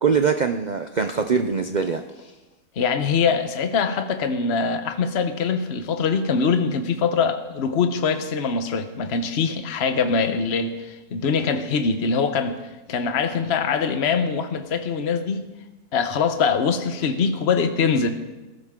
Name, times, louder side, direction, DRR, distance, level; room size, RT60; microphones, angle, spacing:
voice 1, 0.0-2.3, right 5 dB, 75° right, 7 dB, 0.4 m, -23 dB
voice 2, 2.8-12.6 12.9-15.5 15.9-18.1, left 5 dB, 45° left, 8 dB, 1.1 m, -23 dB
20.0 x 13.5 x 3.7 m, 1.1 s
omnidirectional pair, 1.7 m